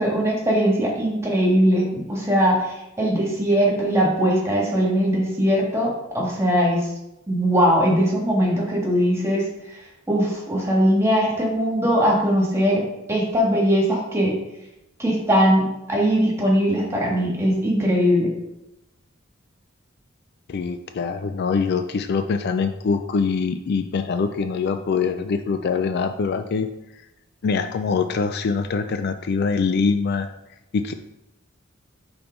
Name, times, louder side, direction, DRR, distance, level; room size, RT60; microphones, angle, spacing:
voice 1, 0.0-6.9 7.3-9.5 10.1-12.8 13.1-14.3 15.0-18.3, equal, 15° right, -3 dB, 1.6 m, -20 dB
voice 2, 20.5-26.7 27.4-30.3 30.7-30.9, left 5 dB, 50° left, 8 dB, 0.3 m, -23 dB
5.5 x 4.3 x 3.9 m, 0.90 s
head